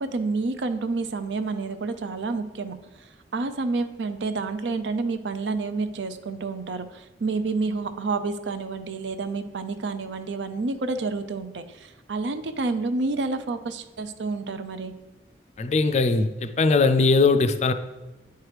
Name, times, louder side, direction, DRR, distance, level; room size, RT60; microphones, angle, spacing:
voice 1, 0.0-2.8 3.3-14.9, right 3 dB, 85° right, 0.5 m, -29 dB
voice 2, 15.6-17.7, left 3 dB, 40° left, 0.4 m, -20 dB
9.4 x 4.6 x 3.3 m
head